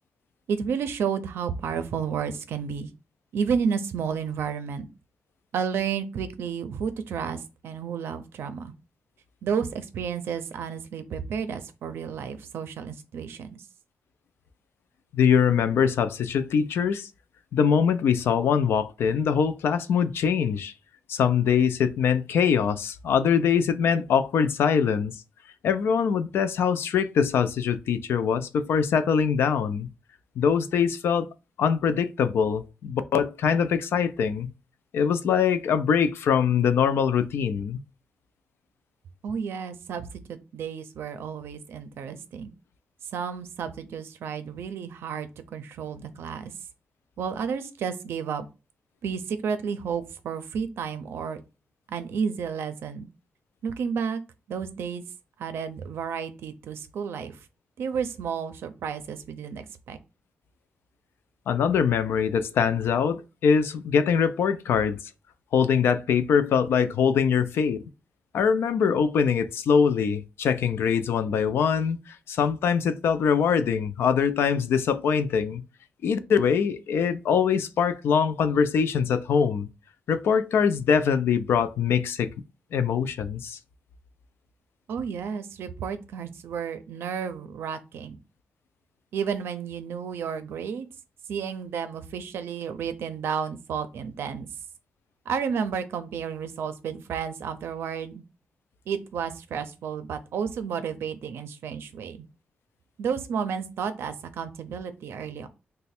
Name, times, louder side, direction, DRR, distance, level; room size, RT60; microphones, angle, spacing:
voice 1, 0.5-2.9 3.3-4.9 5.5-8.7 9.4-13.6 39.2-42.5 43.1-46.5 47.2-48.5 49.0-51.4 51.9-53.1 53.6-54.2 54.5-55.0 55.4-57.4 57.8-60.0 84.9-88.2 89.1-90.9 91.3-94.5 95.3-98.2 98.9-102.2 103.0-105.5, right 6 dB, 85° right, 0.5 m, -31 dB
voice 2, 15.1-17.1 17.5-20.7 21.1-25.1 25.6-29.9 30.4-31.3 31.6-34.5 34.9-37.8 61.5-65.0 65.5-67.8 68.3-75.6 76.0-79.7 80.1-82.3 82.7-83.6, left 7 dB, 80° left, 0.4 m, -23 dB
3.1 x 2.2 x 4.2 m
wide cardioid pair, 170°, 4 cm